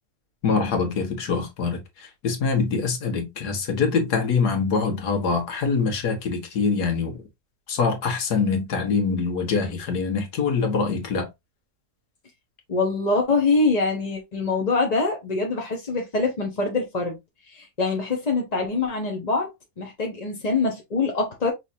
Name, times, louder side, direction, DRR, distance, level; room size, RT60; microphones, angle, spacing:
voice 1, 0.4-7.2 7.7-11.3, left 5 dB, 80° left, 1.8 m, -24 dB
voice 2, 12.7-17.2 17.5-19.5 19.8-21.5, left 3 dB, 30° left, 0.8 m, -24 dB
5.6 x 3.3 x 2.7 m
omnidirectional pair, 1.7 m